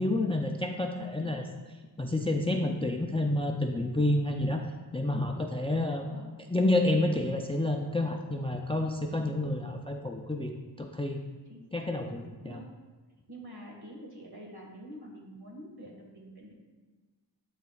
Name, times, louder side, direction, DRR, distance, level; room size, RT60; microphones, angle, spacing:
voice 1, 0.0-1.4 2.0-4.7 4.9-6.1 6.5-11.2 11.7-12.6, left 1 dB, 15° left, 3 dB, 0.4 m, -29 dB
voice 2, 5.9-6.3 9.1-9.4 11.5-11.9 12.4-12.7 13.3-16.5, equal, 60° right, -1 dB, 1.8 m, -47 dB
12.0 x 4.1 x 2.3 m, 1.3 s
wide cardioid pair, 70°, 43 cm